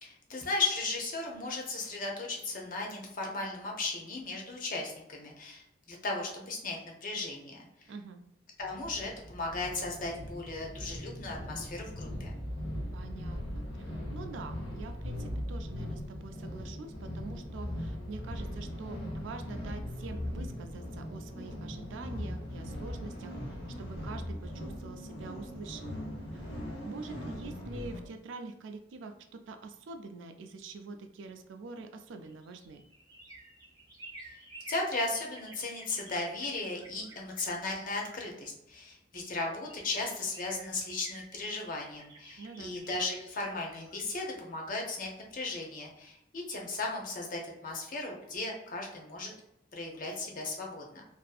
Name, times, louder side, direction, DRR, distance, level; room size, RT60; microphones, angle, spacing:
voice 1, 0.0-7.6 8.6-12.3 34.7-49.3 49.7-51.1, left 3 dB, 45° left, 0 dB, 0.6 m, -36 dB
voice 2, 7.9-8.2 12.9-23.3 23.8-26.1 26.3-26.5 26.8-32.8 42.4-42.8, right 4 dB, 85° right, 7 dB, 0.3 m, -45 dB
sound 1, 8.6-28.1, equal, 85° left, 0.8 m, -40 dB
sound 2, 32.1-38.8 39.4-39.5 39.7-45.5 45.8-45.9, right 2 dB, 25° right, 0.6 m, -52 dB
2.5 x 2.5 x 2.3 m, 0.83 s
head